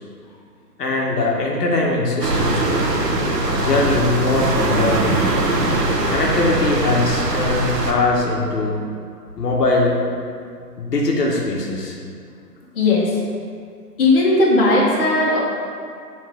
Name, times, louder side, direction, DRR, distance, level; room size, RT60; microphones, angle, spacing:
voice 1, 0.8-2.9 3.6-5.2 6.1-8.8 9.4-10.0 10.8-12.0, left 2 dB, 70° left, -2 dB, 1.3 m, -21 dB
sound 1, 2.2-7.9, right 2 dB, 75° right, 1.1 m, -21 dB
voice 2, 12.7-13.1 14.0-15.4, left 2 dB, 35° left, -5 dB, 1.4 m, -16 dB
6.5 x 3.8 x 5.0 m, 2.2 s
hypercardioid pair, 150°, 48 cm